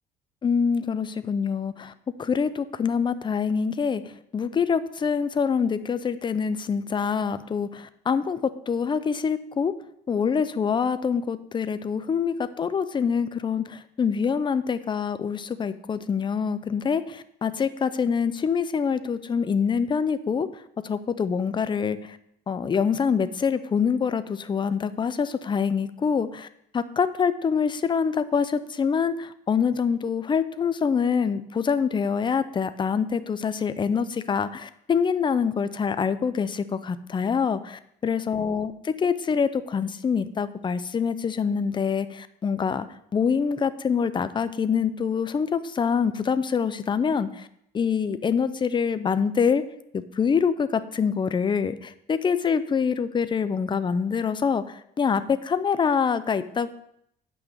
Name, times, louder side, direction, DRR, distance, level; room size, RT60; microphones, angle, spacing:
voice 1, 0.4-1.9 2.2-9.8 10.1-20.5 20.8-22.2 22.5-26.5 26.7-42.9 43.1-47.5 47.7-49.6 49.9-56.8, left 6 dB, 30° left, 13 dB, 0.6 m, -25 dB
8.7 x 6.2 x 6.7 m, 0.74 s
cardioid pair, 110°, 17 cm